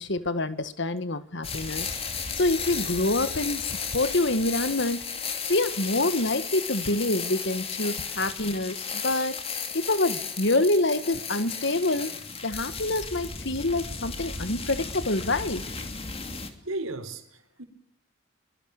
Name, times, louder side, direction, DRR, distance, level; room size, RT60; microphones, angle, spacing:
voice 1, 0.0-1.9 2.4-5.0 5.5-9.4 9.7-12.1 12.4-15.6, left 2 dB, 55° left, 1.7 m, -26 dB
sound 1, 1.4-16.5, left 5 dB, 30° left, 2.8 m, -34 dB
voice 2, 16.6-17.6, right 2 dB, 75° right, 4.3 m, -36 dB
24.5 x 23.0 x 6.6 m
head